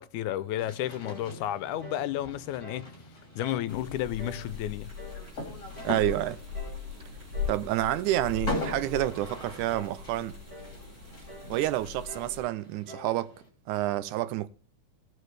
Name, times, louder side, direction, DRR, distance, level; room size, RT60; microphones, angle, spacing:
voice 1, 0.0-2.9 3.4-4.9, left 12 dB, 85° left, 2.0 m, -32 dB
sound 1, 0.6-13.5, left 1 dB, 25° left, 3.4 m, -42 dB
sound 2, 1.0-1.3 1.8-2.1 2.6-2.9 3.4-3.7 4.2-4.5 5.0-5.3 5.8-6.0 6.5-6.8 7.3-7.6 8.1-8.4 8.9-9.2 9.7-10.0 10.5-10.8 11.3-11.6 12.1-12.4 12.9-13.2, equal, 15° right, 4.9 m, -46 dB
sound 3, 3.7-12.4, left 6 dB, 30° right, 5.3 m, -40 dB
voice 2, 5.8-6.4 7.5-10.4 11.5-13.3 13.7-14.5, right 15 dB, 85° right, 2.1 m, -29 dB
18.0 x 6.3 x 3.3 m
omnidirectional pair, 3.5 m